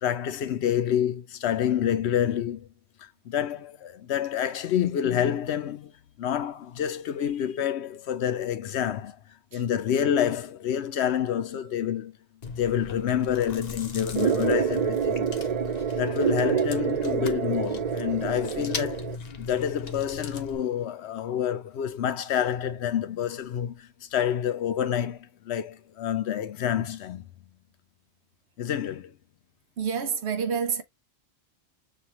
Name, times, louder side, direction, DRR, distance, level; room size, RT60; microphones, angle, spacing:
voice 1, 0.0-2.7 3.0-5.9 6.2-9.2 9.5-12.1 12.6-15.3 16.0-19.1 19.4-27.3 28.6-29.2, left 9 dB, 75° left, 0.9 m, -28 dB
Chewing mastication, 12.4-20.6, left 4 dB, 45° left, 0.7 m, -38 dB
sound 1, 14.2-19.2, right 8 dB, 55° right, 0.4 m, -27 dB
voice 2, 29.8-30.8, right 6 dB, 75° right, 1.1 m, -27 dB
6.4 x 2.4 x 2.8 m
omnidirectional pair, 1.1 m